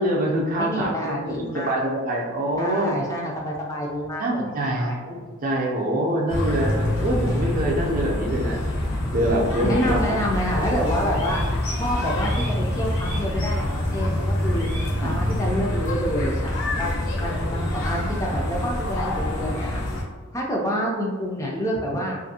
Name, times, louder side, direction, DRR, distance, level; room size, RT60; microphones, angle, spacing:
voice 1, 0.0-3.0 4.2-8.6 9.1-10.2 15.0-15.2, right 1 dB, 40° right, -1 dB, 0.5 m, -25 dB
voice 2, 0.6-1.8 2.5-5.0 9.6-11.4 11.8-14.7 15.0-16.9 17.2-19.8 20.3-22.2, equal, 15° left, -2 dB, 0.3 m, -28 dB
sound 1, 6.3-20.0, left 1 dB, 65° left, 0.7 m, -26 dB
sound 2, 10.3-15.4, equal, 90° left, 1.0 m, -41 dB
2.6 x 2.5 x 2.7 m, 1.4 s
head